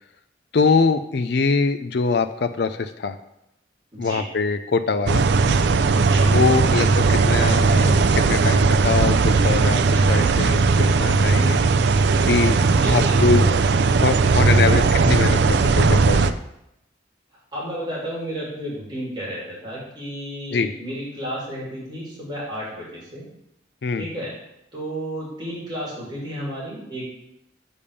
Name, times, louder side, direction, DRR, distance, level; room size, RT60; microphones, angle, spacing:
voice 1, 0.5-3.2 4.0-5.2 6.2-11.6 12.2-12.6 12.8-13.4 14.0-16.3 20.5-20.7 23.8-24.1, left 4 dB, 60° left, 8 dB, 0.4 m, -23 dB
voice 2, 3.9-4.3 6.0-6.3 12.7-13.6 17.5-23.3 23.9-24.3 24.7-27.0, equal, 25° right, -7 dB, 3.1 m, -32 dB
sound 1, 5.1-16.3, right 4 dB, 65° right, 0.4 m, -18 dB
7.0 x 5.1 x 6.9 m, 0.83 s
head